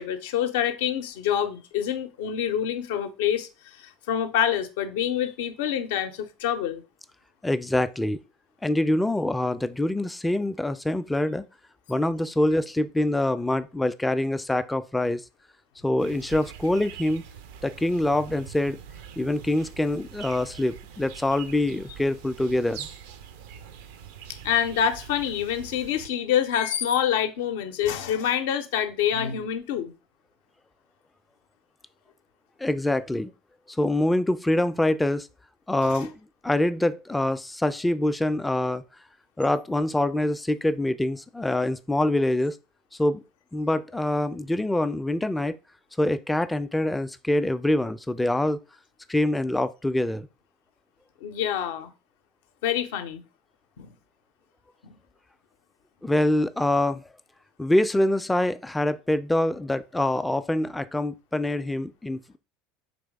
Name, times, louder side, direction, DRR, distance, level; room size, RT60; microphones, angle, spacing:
voice 1, 0.0-6.8 24.4-29.9 35.8-36.1 51.2-51.9 52.6-53.2 53.8-53.9 54.8-55.0, left 9 dB, 65° left, 0.5 m, -26 dB
voice 2, 7.4-8.2 8.6-11.5 11.9-15.2 15.8-17.3 17.6-18.8 19.2-22.9 32.6-33.3 33.7-35.3 35.7-38.8 39.4-42.6 43.0-43.2 43.5-45.6 46.0-48.6 49.1-50.3 56.0-57.1 57.6-62.4, left 1 dB, 10° left, 0.3 m, -25 dB
sound 1, 16.0-26.1, right 8 dB, 65° right, 0.4 m, -44 dB
4.1 x 3.1 x 3.4 m
figure-of-eight pair, 75°, 0 cm